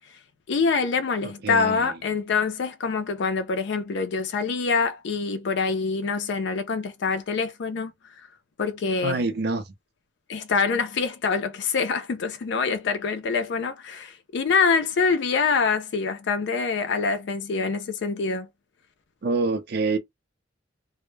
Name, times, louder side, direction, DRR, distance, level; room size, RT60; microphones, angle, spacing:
voice 1, 0.5-7.9 8.6-9.2 10.3-18.5, left 5 dB, 65° left, 0.4 m, -25 dB
voice 2, 1.2-1.9 9.0-9.7 19.2-20.0, right 3 dB, 55° right, 0.4 m, -26 dB
2.1 x 2.0 x 3.1 m
head